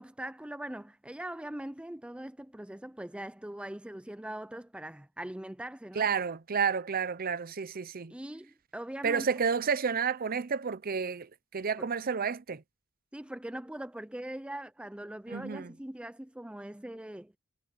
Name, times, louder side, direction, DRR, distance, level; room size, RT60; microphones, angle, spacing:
voice 1, 0.0-6.1 8.1-9.3 11.8-11.9 13.1-17.4, right 1 dB, 5° right, 0.4 m, -41 dB
voice 2, 6.0-8.1 9.0-12.6 15.3-15.7, right 6 dB, 45° right, 0.7 m, -30 dB
head